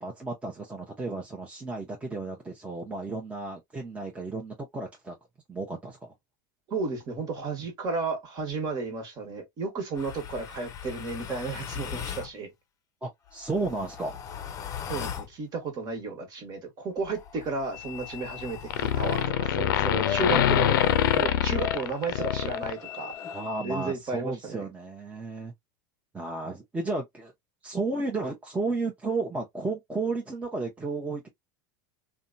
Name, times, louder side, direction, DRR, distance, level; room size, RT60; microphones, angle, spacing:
voice 1, 0.0-5.1 5.5-6.1 13.0-14.2 23.3-25.5 26.1-27.3 27.6-31.3, right 3 dB, 10° right, 0.8 m, -33 dB
voice 2, 6.7-12.5 14.9-20.8 21.1-23.1 23.6-24.7, right 3 dB, 40° right, 1.4 m, -33 dB
sound 1, 9.9-12.3 13.3-15.3 17.0-19.3 20.0-23.4, left 8 dB, 30° left, 0.6 m, -39 dB
sound 2, 17.8-18.4 18.7-23.1, left 10 dB, 85° left, 0.5 m, -25 dB
2.7 x 2.2 x 2.6 m
supercardioid pair, 115°, 11 cm